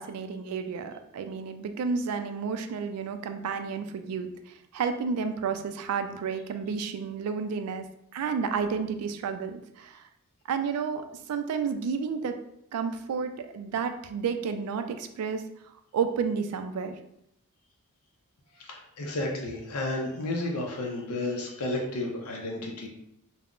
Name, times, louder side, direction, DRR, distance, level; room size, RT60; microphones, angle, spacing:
voice 1, 0.0-7.9 8.1-10.0 10.5-12.4 12.7-15.4 15.9-17.0, right 6 dB, 80° right, 9 dB, 0.3 m, -31 dB
voice 2, 18.7-22.9, left 2 dB, 80° left, 0 dB, 0.5 m, -32 dB
2.3 x 2.0 x 3.5 m, 0.77 s
head